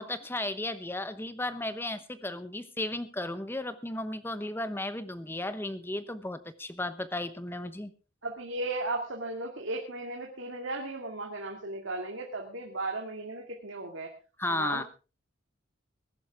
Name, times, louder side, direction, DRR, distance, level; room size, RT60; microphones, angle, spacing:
voice 1, 0.0-7.9 14.4-14.8, left 1 dB, 10° left, 12 dB, 0.9 m, -34 dB
voice 2, 8.2-14.1 14.5-14.8, right 2 dB, 70° right, 1 dB, 2.3 m, -36 dB
21.0 x 11.0 x 3.5 m, 0.34 s
head